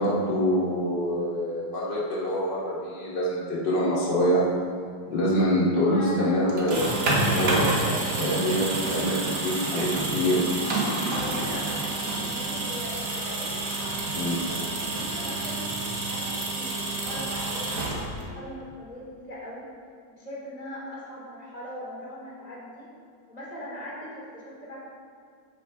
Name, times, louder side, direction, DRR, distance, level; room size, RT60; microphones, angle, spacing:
voice 1, 0.0-4.4 5.1-6.9 7.3-10.5 14.1-14.4, equal, 70° left, -6 dB, 3.3 m, -25 dB
voice 2, 5.9-6.7 11.1-13.9 14.2-19.7 20.1-22.9 23.3-24.8, left 1 dB, 20° left, -6 dB, 3.5 m, -40 dB
sound 1, 6.5-18.4, right 2 dB, 60° right, 2.4 m, -28 dB
15.0 x 7.2 x 5.3 m, 2.2 s
omnidirectional pair, 2.0 m